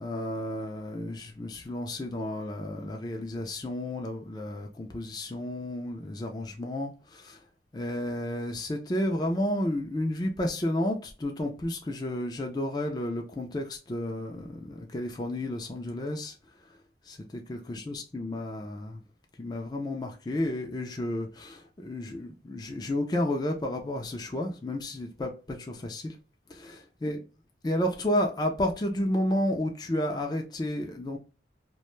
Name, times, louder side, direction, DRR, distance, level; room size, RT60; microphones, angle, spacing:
voice 1, 0.0-7.4 7.7-16.4 16.7-16.8 17.0-19.0 19.4-26.2 26.5-27.3 27.6-31.2, left 1 dB, 20° left, 0.4 m, -32 dB
2.5 x 2.2 x 3.0 m
head